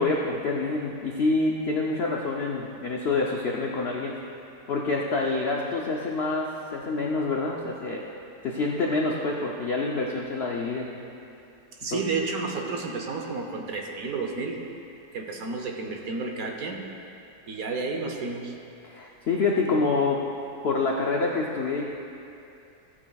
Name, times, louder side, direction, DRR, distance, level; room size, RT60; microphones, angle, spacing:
voice 1, 0.0-4.2 4.7-8.0 8.4-10.9 11.9-12.0 18.8-20.2 20.6-21.9, left 3 dB, 70° left, -1 dB, 0.6 m, -27 dB
voice 2, 11.8-14.6 15.1-16.9 17.5-18.5, right 4 dB, 60° right, 2 dB, 1.2 m, -31 dB
15.0 x 8.5 x 2.3 m, 2.7 s
omnidirectional pair, 1.9 m